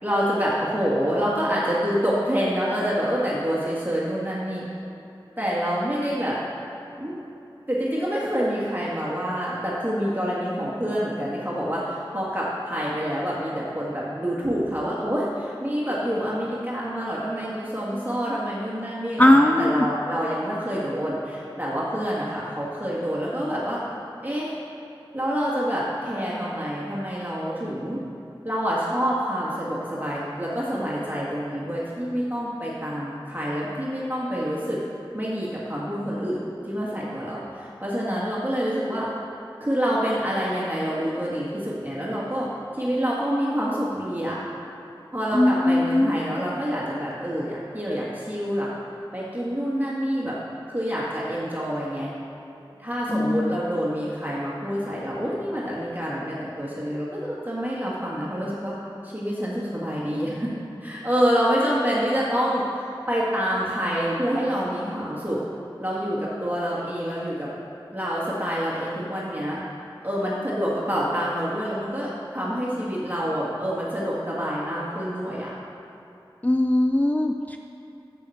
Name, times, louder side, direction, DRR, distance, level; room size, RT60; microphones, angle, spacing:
voice 1, 0.0-4.7 5.4-6.4 7.0-7.2 7.7-23.8 24.2-24.5 25.1-28.0 28.4-34.8 35.1-36.4 36.6-39.1 39.6-42.5 42.7-44.4 45.1-48.7 49.1-50.3 50.7-52.1 52.8-58.7 59.0-60.5 60.8-65.4 65.8-67.5 67.9-69.6 70.0-75.5, equal, 20° right, -7 dB, 1.7 m, -27 dB
voice 2, 19.2-19.9 45.3-46.2 53.1-53.6 76.4-77.6, left 1 dB, 20° left, 4 dB, 0.4 m, -19 dB
6.9 x 6.9 x 7.7 m, 2.9 s
wide cardioid pair, 45°, 9 cm